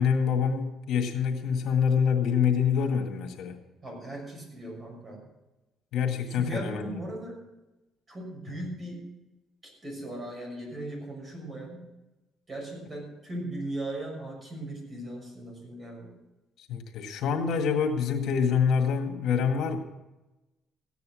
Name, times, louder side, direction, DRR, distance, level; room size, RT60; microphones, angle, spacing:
voice 1, 0.0-3.6 5.9-6.8 16.7-19.8, left 7 dB, 70° left, 3 dB, 1.9 m, -26 dB
voice 2, 3.8-5.2 6.3-7.4 8.1-9.0 9.8-11.8 12.5-16.1, right 1 dB, 30° right, 0 dB, 6.5 m, -38 dB
15.5 x 9.5 x 6.3 m, 1.0 s
cardioid pair, 120°, 0 cm